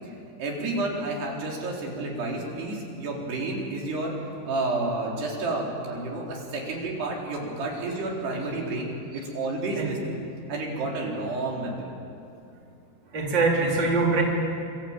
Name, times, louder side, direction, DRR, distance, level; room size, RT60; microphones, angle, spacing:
voice 1, 0.4-4.2 4.4-10.2 10.5-11.9, right 2 dB, 90° right, -2 dB, 6.2 m, -30 dB
voice 2, 13.1-14.2, right 3 dB, 30° right, -1 dB, 4.5 m, -23 dB
27.5 x 24.0 x 9.0 m, 2.6 s
omnidirectional pair, 4.6 m